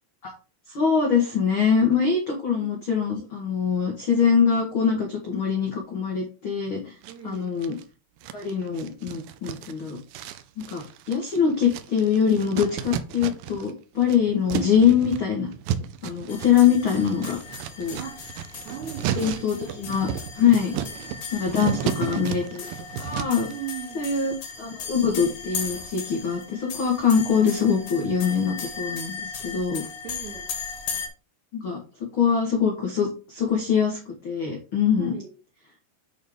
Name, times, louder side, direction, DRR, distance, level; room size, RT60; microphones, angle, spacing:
voice 1, 0.7-6.9 7.2-7.7 8.3-10.0 10.6-15.5 16.0-17.4 17.8-18.0 19.1-20.1 20.3-20.7 21.3-22.7 23.0-23.5 23.9-29.8 31.5-31.8 32.1-35.1, left 7 dB, 80° left, 0 dB, 1.1 m, -23 dB
sound 1, 7.0-7.8 8.2-13.7 14.0-23.5, right 10 dB, 85° right, 2.2 m, -33 dB
voice 2, 7.1-7.6 18.0-18.2 18.7-19.8 20.7-20.9 21.5-22.3 23.5-24.1 30.0-30.5 34.9-35.3, right 10 dB, 70° right, 1 dB, 1.9 m, -39 dB
sound 2, 16.3-31.1, left 6 dB, 55° left, 2.1 m, -37 dB
8.4 x 3.6 x 5.2 m, 0.34 s
omnidirectional pair, 4.9 m